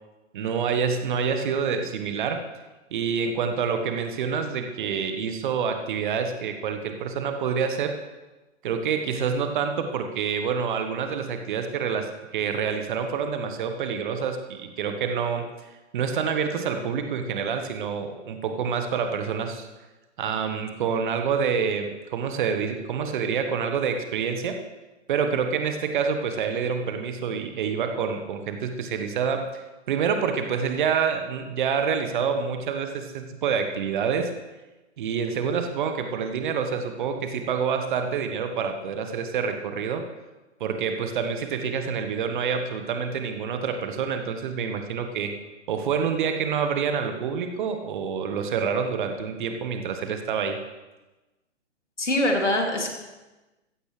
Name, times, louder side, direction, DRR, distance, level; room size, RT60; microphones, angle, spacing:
voice 1, 0.3-2.4 2.9-8.0 8.6-15.7 15.9-19.7 20.2-24.6 25.1-29.6 29.9-34.3 35.0-40.0 40.6-45.3 45.7-50.6, right 6 dB, 45° right, 6 dB, 1.4 m, -27 dB
voice 2, 52.0-52.9, left 1 dB, 75° left, 2 dB, 2.8 m, -23 dB
15.0 x 15.0 x 3.3 m, 1.1 s
figure-of-eight pair, 120°, 36 cm